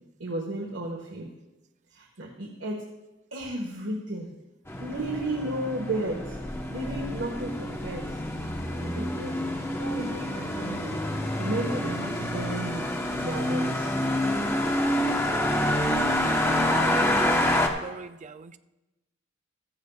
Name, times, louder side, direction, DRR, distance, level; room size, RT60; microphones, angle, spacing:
voice 1, 0.2-1.3 1.9-2.9 3.3-4.3 4.8-6.4 6.7-8.2 8.7-9.3 9.8-11.0 11.4-12.8 13.2-13.9, right 1 dB, 85° right, 0 dB, 1.4 m, -33 dB
sound 1, 4.7-17.7, left 1 dB, 15° left, 1.0 m, -27 dB
voice 2, 16.8-18.6, right 5 dB, 40° right, 10 dB, 0.4 m, -42 dB
14.5 x 14.0 x 2.4 m, 1.0 s
head